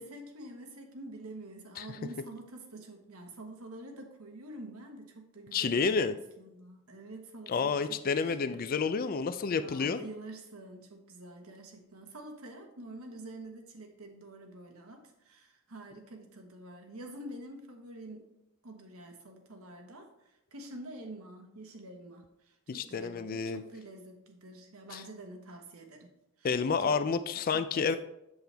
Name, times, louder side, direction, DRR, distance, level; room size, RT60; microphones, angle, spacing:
voice 1, 0.0-8.6 9.6-18.3 18.6-20.1 20.5-26.1 26.4-26.9 27.3-28.0, right 1 dB, 80° right, 4 dB, 1.3 m, -47 dB
voice 2, 5.5-6.1 7.5-10.0 22.7-23.6 24.9-25.0 26.4-28.0, left 5 dB, 40° left, 11 dB, 0.4 m, -30 dB
7.8 x 7.1 x 3.4 m, 0.88 s
head